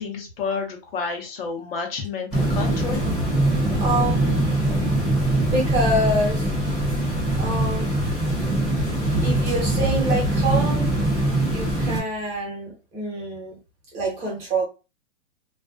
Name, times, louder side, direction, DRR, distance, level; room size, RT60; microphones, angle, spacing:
voice 1, 0.0-3.0, left 5 dB, 55° left, 2 dB, 0.8 m, -30 dB
sound 1, 2.3-12.0, right 1 dB, ahead, 0.6 m, -22 dB
voice 2, 3.8-4.6 5.5-6.5 7.3-7.8 8.9-10.9 11.5-13.6 13.9-14.6, right 1 dB, 20° right, -3 dB, 1.0 m, -26 dB
2.4 x 2.2 x 2.3 m, 0.29 s
hypercardioid pair, 150°, 35 cm